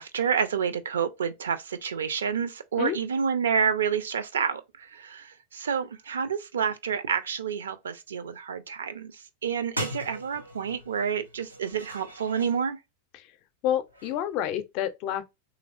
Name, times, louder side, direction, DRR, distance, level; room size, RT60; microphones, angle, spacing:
voice 1, 0.0-9.1 9.4-12.8, right 7 dB, 65° right, 0.5 m, -29 dB
sound 1, 9.4-9.5 9.8-12.6 13.9-14.2, equal, 85° right, 1.0 m, -39 dB
voice 2, 13.6-15.2, left 10 dB, 40° left, 0.5 m, -29 dB
3.3 x 3.1 x 2.4 m
figure-of-eight pair, 90°, 0 cm